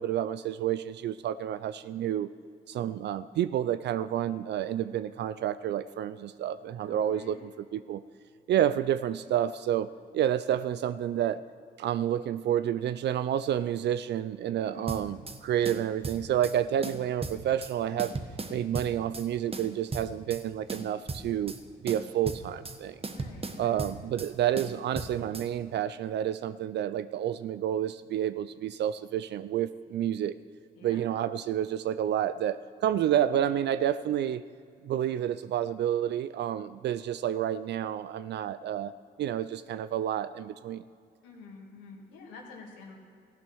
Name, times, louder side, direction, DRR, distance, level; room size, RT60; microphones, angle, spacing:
voice 1, 0.0-2.3 2.7-8.0 8.5-11.4 11.8-18.2 18.5-21.5 21.8-23.0 23.6-30.3 30.8-34.4 34.8-38.9 39.2-40.8, right 10 dB, 60° right, 14 dB, 0.4 m, -29 dB
voice 2, 6.8-7.4 14.6-14.9 23.0-23.9 30.8-31.1 41.2-42.9, left 4 dB, 90° left, 0 dB, 2.4 m, -48 dB
sound 1, 14.9-15.4 15.7-16.6 16.8-17.7 18.0-19.3 19.5-20.4 20.7-21.6 21.9-22.8 23.0-24.3 24.6-25.5, right 3 dB, 30° right, 1.3 m, -37 dB
15.0 x 8.6 x 6.3 m, 2.3 s
supercardioid pair, 55°, 20 cm